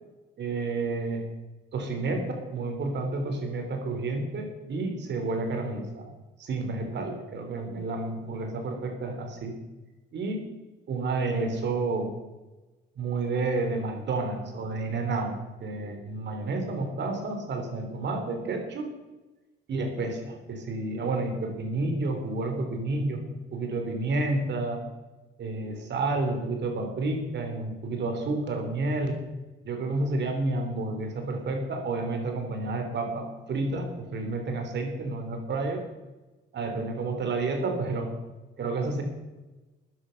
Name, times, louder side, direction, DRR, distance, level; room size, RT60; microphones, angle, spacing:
voice 1, 0.4-1.3 1.7-6.1 6.4-9.6 10.1-10.5 10.9-12.2 13.0-18.9 19.7-23.2 23.5-24.8 25.4-29.2 29.6-35.8 36.5-38.2 38.6-39.0, right 3 dB, 60° right, 4 dB, 3.4 m, -30 dB
14.5 x 9.9 x 5.7 m, 1.1 s
cardioid pair, 90°, 20 cm